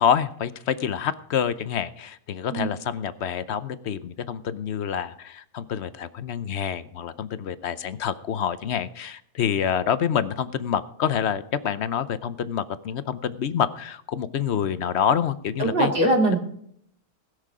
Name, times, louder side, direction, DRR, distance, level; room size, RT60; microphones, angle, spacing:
voice 1, 0.0-15.9, left 8 dB, 55° left, 14 dB, 0.8 m, -27 dB
voice 2, 15.6-16.4, right 1 dB, 35° right, 1 dB, 2.7 m, -21 dB
19.5 x 6.7 x 4.9 m, 0.67 s
omnidirectional pair, 1.6 m